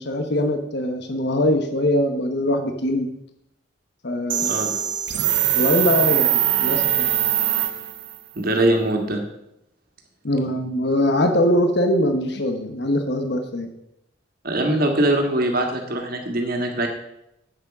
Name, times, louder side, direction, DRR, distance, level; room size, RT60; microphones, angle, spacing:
voice 1, 0.0-3.1 4.0-4.5 5.5-7.1 10.2-13.7, left 1 dB, 60° left, 6 dB, 1.1 m, -22 dB
sound 1, 4.3-8.2, right 11 dB, 75° right, 1.3 m, -22 dB
voice 2, 4.4-4.8 8.4-9.2 14.4-16.9, right 1 dB, 50° right, 3 dB, 1.9 m, -22 dB
9.4 x 8.6 x 6.1 m, 0.84 s
head